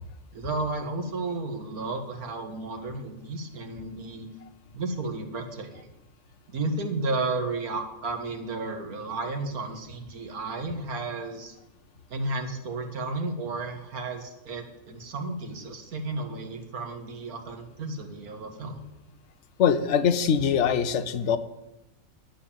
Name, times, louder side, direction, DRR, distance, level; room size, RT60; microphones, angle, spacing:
voice 1, 0.3-4.3 4.7-5.9 6.5-11.6 12.1-18.8, right 3 dB, 90° right, 4 dB, 2.1 m, -33 dB
voice 2, 19.6-21.4, left 7 dB, 60° left, 10 dB, 1.1 m, -23 dB
11.0 x 9.4 x 7.3 m, 0.93 s
omnidirectional pair, 1.5 m